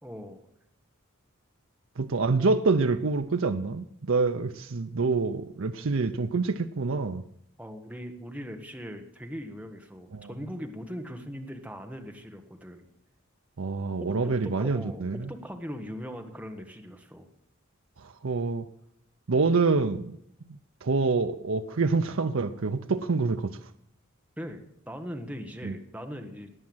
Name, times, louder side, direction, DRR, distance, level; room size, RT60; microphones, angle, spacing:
voice 1, 0.0-0.4 7.6-12.8 14.0-17.3 24.4-26.5, equal, 5° right, 4 dB, 1.3 m, -40 dB
voice 2, 2.0-7.2 10.1-10.3 13.6-15.2 18.2-18.7 19.3-20.2 20.8-23.6 25.6-25.7, right 4 dB, 70° right, 8 dB, 0.6 m, -26 dB
19.0 x 8.8 x 7.8 m, 0.76 s
head